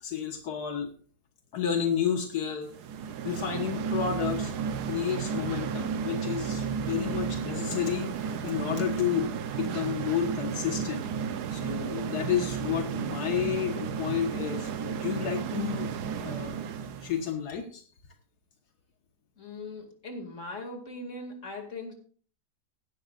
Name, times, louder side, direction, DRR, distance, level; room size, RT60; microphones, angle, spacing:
voice 1, 0.0-0.9 1.5-2.7 3.2-4.5 4.9-11.1 11.5-15.9 16.2-16.6 17.0-17.8, left 8 dB, 85° left, 4 dB, 1.9 m, -31 dB
sound 1, 2.7-17.2, right 7 dB, 85° right, 1.4 m, -33 dB
voice 2, 19.4-21.9, left 2 dB, 50° left, 3 dB, 2.7 m, -40 dB
16.5 x 12.0 x 2.5 m, 0.43 s
omnidirectional pair, 1.7 m